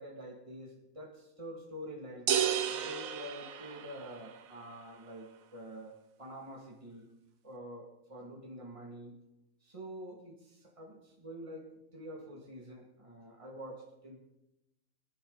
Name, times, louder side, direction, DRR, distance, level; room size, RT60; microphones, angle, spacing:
voice 1, 0.0-2.3 2.7-7.1 7.4-9.2 9.6-14.2, equal, 20° right, -1 dB, 2.6 m, -47 dB
sound 1, 2.3-4.3, right 9 dB, 75° right, 1.3 m, -32 dB
24.5 x 11.5 x 4.2 m, 0.93 s
omnidirectional pair, 1.5 m